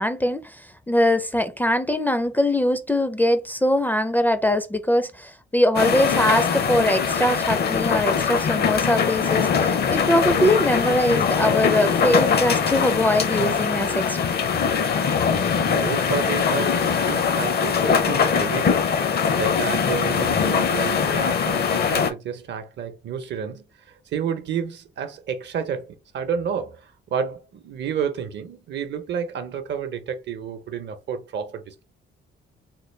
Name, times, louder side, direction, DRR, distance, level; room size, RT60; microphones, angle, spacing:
voice 1, 0.0-14.4, left 1 dB, 10° left, 0.4 m, -22 dB
sound 1, 5.7-22.1, left 6 dB, 55° left, 0.6 m, -22 dB
voice 2, 15.3-31.7, right 7 dB, 60° right, 0.7 m, -31 dB
3.8 x 2.2 x 3.2 m
cardioid pair, 90°, 20 cm